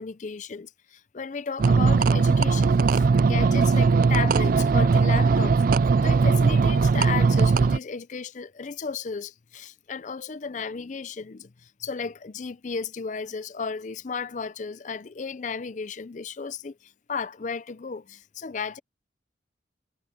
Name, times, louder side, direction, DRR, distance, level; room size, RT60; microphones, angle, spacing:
voice 1, 0.0-5.6 6.0-18.8, left 5 dB, 40° left, 0.5 m, -34 dB
sound 1, 1.6-7.8, right 4 dB, 50° right, 0.3 m, -19 dB
head